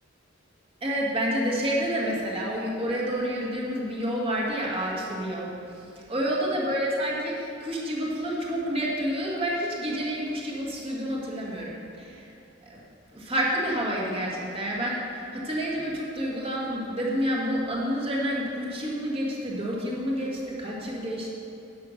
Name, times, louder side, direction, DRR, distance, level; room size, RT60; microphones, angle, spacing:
voice 1, 0.8-5.5 6.0-12.3 12.7-12.8 13.1-21.3, equal, 30° right, -4 dB, 1.8 m, -29 dB
10.5 x 5.8 x 6.4 m, 2.7 s
head